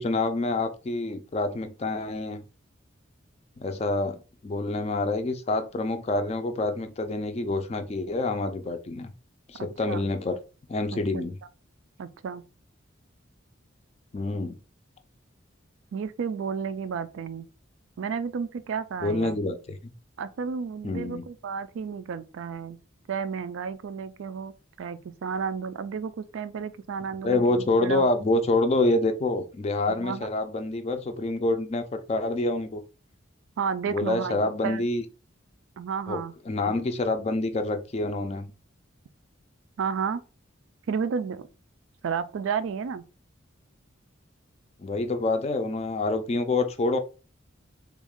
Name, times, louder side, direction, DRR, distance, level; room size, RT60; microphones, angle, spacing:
voice 1, 0.0-2.4 3.6-9.1 9.5-10.4 10.7-11.4 14.1-14.6 19.0-19.9 20.8-21.2 27.2-32.8 33.9-35.0 36.1-38.5 44.8-47.0, left 2 dB, 30° left, 0.3 m, -27 dB
voice 2, 9.6-10.1 10.9-11.0 12.0-12.4 15.9-17.5 18.0-19.4 20.2-22.8 23.1-28.1 30.0-30.3 33.6-34.9 35.8-36.3 36.6-36.8 39.8-40.2 40.9-41.5 42.0-43.0, right 6 dB, 80° right, 0.3 m, -32 dB
3.5 x 2.3 x 3.5 m
head